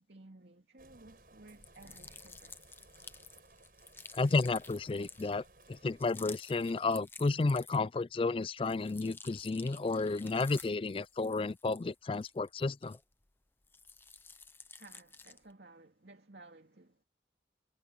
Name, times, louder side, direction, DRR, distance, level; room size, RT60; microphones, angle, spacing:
voice 1, 0.0-2.6 14.8-17.0, right 2 dB, 70° right, 2.5 m, -56 dB
sound 1, 0.8-6.0, right 2 dB, 50° right, 7.9 m, -60 dB
sound 2, 1.5-8.0 8.4-13.3 13.6-15.5, left 4 dB, 10° left, 0.7 m, -52 dB
voice 2, 4.1-5.4 5.7-13.0, left 3 dB, 30° left, 0.3 m, -32 dB
head